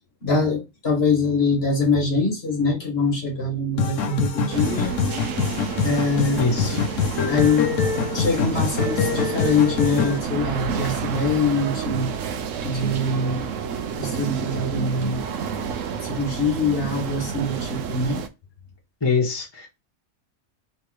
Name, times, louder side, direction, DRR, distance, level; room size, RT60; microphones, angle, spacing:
voice 1, 0.2-4.9 5.8-6.4 6.7-6.8 7.3-7.7 8.1-12.1 12.6-13.4 13.9-15.2 16.0-18.2, left 3 dB, 55° left, 1.6 m, -23 dB
sound 1, 3.8-10.2, left 6 dB, 85° left, 1.1 m, -24 dB
sound 2, 4.5-18.3, right 6 dB, 90° right, 1.0 m, -30 dB
voice 2, 6.4-6.8 19.0-19.7, left 4 dB, 20° left, 1.2 m, -23 dB
3.3 x 3.2 x 4.6 m
omnidirectional pair, 1.3 m